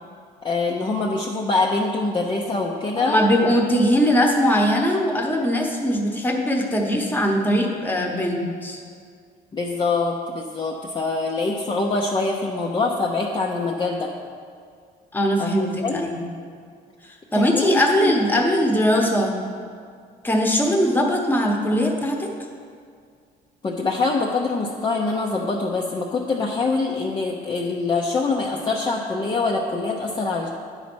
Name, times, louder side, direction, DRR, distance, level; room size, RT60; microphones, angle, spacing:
voice 1, 0.4-3.2 9.5-14.1 15.4-16.1 17.3-18.1 23.6-30.5, left 3 dB, 25° left, -2 dB, 0.7 m, -24 dB
voice 2, 2.9-8.8 15.1-16.2 17.0-19.4 20.2-22.3, equal, 10° left, 1 dB, 1.1 m, -21 dB
9.7 x 4.2 x 6.1 m, 2.1 s
cardioid pair, 110°, 17 cm